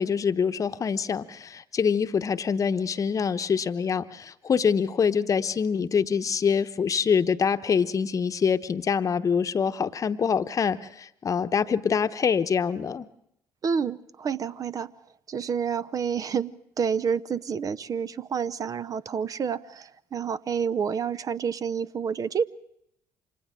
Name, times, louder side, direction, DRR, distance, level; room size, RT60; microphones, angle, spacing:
voice 1, 0.0-13.1, left 6 dB, 40° left, 11 dB, 1.0 m, -25 dB
voice 2, 13.6-14.9 15.3-22.4, right 6 dB, 45° right, 15 dB, 0.7 m, -29 dB
29.0 x 25.5 x 3.7 m, 0.78 s
hypercardioid pair, 55°, 9 cm